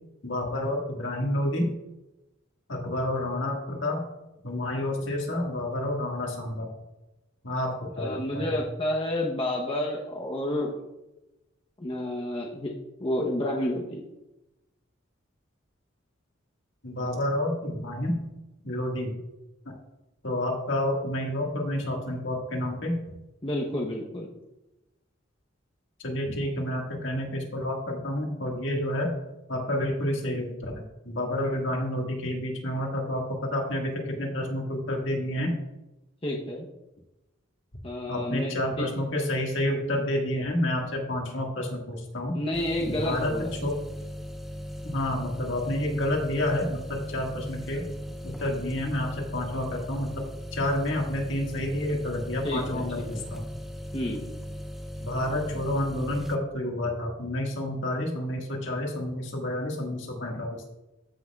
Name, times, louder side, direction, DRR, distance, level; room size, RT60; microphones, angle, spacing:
voice 1, 0.2-1.7 2.7-4.0 4.4-6.7 7.4-8.6 16.8-18.3 18.6-19.1 19.7-19.8 20.2-23.2 26.0-29.1 29.5-35.6 38.1-42.4 42.9-43.7 44.8-47.9 48.2-50.2 50.5-53.4 55.0-60.6, left 1 dB, 70° left, 0 dB, 1.8 m, -29 dB
voice 2, 8.0-10.7 11.8-12.7 13.0-14.0 23.4-24.3 36.2-36.7 37.8-38.9 42.3-43.5 52.4-53.2 53.9-54.2, left 1 dB, 30° left, -1 dB, 0.9 m, -30 dB
sound 1, 42.5-56.4, equal, ahead, 0.4 m, -38 dB
14.0 x 6.1 x 2.3 m, 0.97 s
head